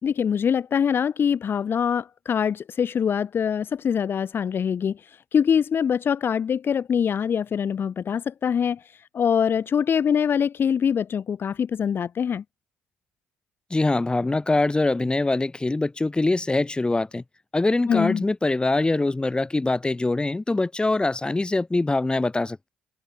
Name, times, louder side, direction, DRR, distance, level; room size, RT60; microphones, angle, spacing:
voice 1, 0.0-8.8 9.1-12.4 17.9-18.2, left 7 dB, 45° left, 3.6 m, -24 dB
voice 2, 13.7-17.2 17.5-22.7, left 2 dB, 20° left, 5.5 m, -23 dB
figure-of-eight pair, 50°, 5 cm